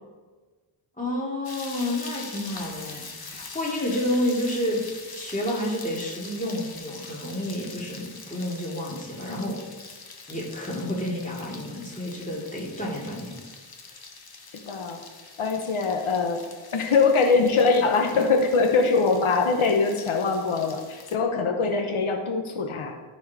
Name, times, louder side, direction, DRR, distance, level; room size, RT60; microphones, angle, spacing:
voice 1, 1.0-4.8 5.1-9.6 10.3-13.4, left 1 dB, 15° left, -4 dB, 2.5 m, -30 dB
sound 1, 1.4-21.2, left 4 dB, 50° left, 1.1 m, -43 dB
voice 2, 14.7-15.0 15.4-16.4 16.7-22.9, left 4 dB, 85° left, 4 dB, 1.0 m, -22 dB
13.5 x 4.5 x 4.8 m, 1.3 s
wide cardioid pair, 90°, 48 cm